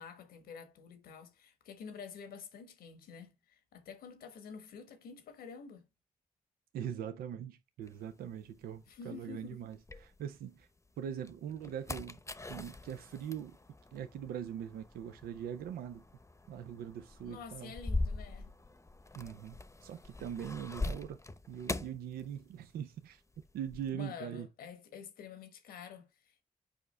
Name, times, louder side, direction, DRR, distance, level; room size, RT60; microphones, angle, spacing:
voice 1, 0.0-5.8 8.9-9.6 17.2-18.5 23.9-26.4, left 6 dB, 85° left, 1.2 m, -49 dB
voice 2, 6.7-10.7 11.0-12.2 12.5-13.6 13.9-16.0 16.5-17.7 19.1-21.2 21.5-23.2 23.5-24.5, right 9 dB, 85° right, 0.5 m, -42 dB
sound 1, 7.9-10.6 11.1-22.9 23.1-23.9, left 2 dB, 20° left, 0.8 m, -42 dB
7.0 x 5.0 x 3.2 m
supercardioid pair, 45°, 15 cm